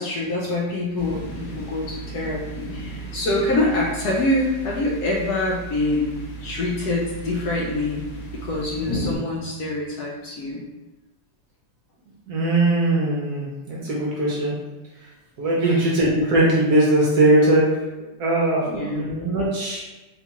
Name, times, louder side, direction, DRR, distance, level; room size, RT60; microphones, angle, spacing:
voice 1, 0.0-8.1 8.3-10.6 15.6-15.9 18.7-19.1, left 2 dB, 70° left, -3 dB, 1.0 m, -25 dB
sound 1, 1.0-9.2, right 2 dB, 90° left, 1.5 m, -35 dB
voice 2, 12.3-14.5 15.4-17.7 18.2-19.8, right 1 dB, 65° right, -4 dB, 1.1 m, -20 dB
4.0 x 2.3 x 2.8 m, 1.1 s
omnidirectional pair, 2.0 m